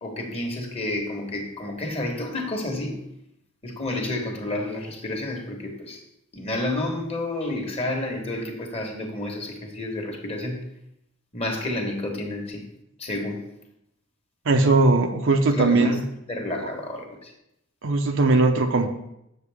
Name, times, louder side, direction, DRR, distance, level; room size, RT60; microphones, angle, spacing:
voice 1, 0.0-3.0 3.6-6.0 6.3-10.6 11.3-12.7 13.0-13.5 15.5-16.0 16.3-17.3, left 1 dB, 30° left, 2 dB, 1.3 m, -30 dB
voice 2, 14.5-16.0 17.8-18.9, right 3 dB, 60° right, 6 dB, 0.7 m, -19 dB
7.7 x 6.7 x 3.5 m, 0.82 s
head